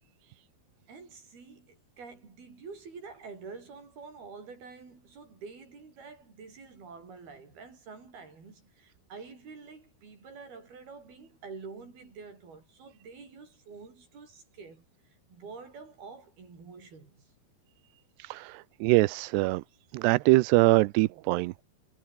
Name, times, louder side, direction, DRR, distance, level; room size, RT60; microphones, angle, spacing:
voice 1, 0.9-14.8 15.3-17.3, right 4 dB, 65° right, 8.6 m, -47 dB
voice 2, 18.2-19.6 19.9-21.6, right 21 dB, 90° right, 2.8 m, -23 dB
omnidirectional pair, 4.7 m